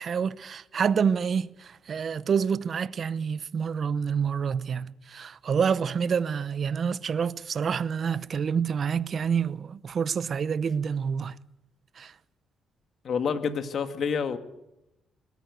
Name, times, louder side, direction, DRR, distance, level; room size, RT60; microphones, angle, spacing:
voice 1, 0.0-11.4 12.0-12.1, right 6 dB, 50° right, 0.8 m, -28 dB
voice 2, 13.0-14.4, left 6 dB, 55° left, 2.0 m, -28 dB
21.5 x 13.5 x 9.5 m
cardioid pair, 90°, 0 cm